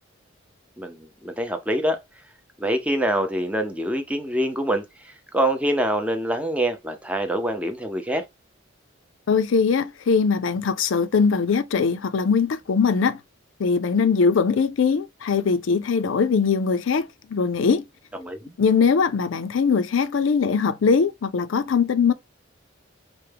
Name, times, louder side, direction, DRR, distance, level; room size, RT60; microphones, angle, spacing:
voice 1, 0.8-2.0 2.6-8.2 18.2-18.5, right 1 dB, 5° right, 0.5 m, -25 dB
voice 2, 9.3-13.2 13.6-17.8 18.6-22.1, left 5 dB, 70° left, 0.4 m, -21 dB
4.5 x 2.1 x 3.3 m
head